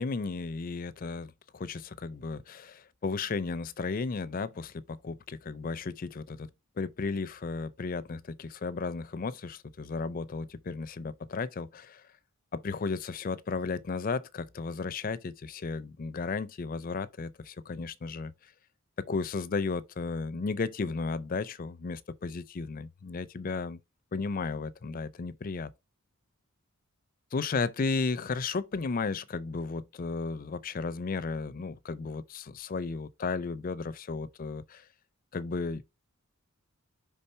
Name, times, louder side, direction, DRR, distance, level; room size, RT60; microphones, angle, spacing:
voice 1, 0.0-6.5 6.8-12.0 12.5-18.5 19.1-23.8 24.1-25.7 27.3-34.9 35.3-36.0, left 4 dB, 40° left, 0.4 m, -34 dB
5.5 x 3.6 x 5.3 m
head